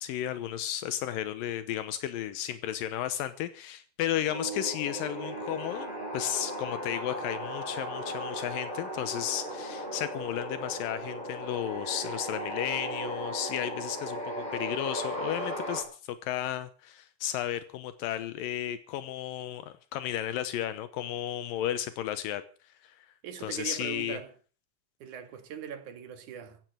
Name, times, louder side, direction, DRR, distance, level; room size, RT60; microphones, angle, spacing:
voice 1, 0.0-22.4 22.8-23.1 23.4-24.2, left 11 dB, 80° left, 2.7 m, -34 dB
sound 1, 4.3-15.8, equal, 15° left, 5.4 m, -36 dB
voice 2, 23.2-24.3 25.0-26.6, right 8 dB, 60° right, 3.2 m, -40 dB
15.5 x 10.5 x 7.9 m
omnidirectional pair, 4.0 m